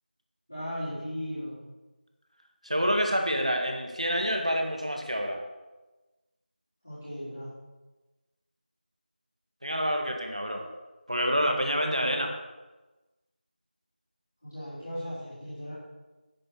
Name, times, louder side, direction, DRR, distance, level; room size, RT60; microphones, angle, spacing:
voice 1, 0.5-1.6 6.8-7.5 14.4-15.7, equal, 15° left, -15 dB, 4.5 m, -37 dB
voice 2, 2.6-5.4 9.6-10.6 11.1-12.3, equal, 40° right, 2 dB, 1.8 m, -27 dB
9.8 x 9.6 x 6.8 m, 1.2 s
figure-of-eight pair, 180°, 5 cm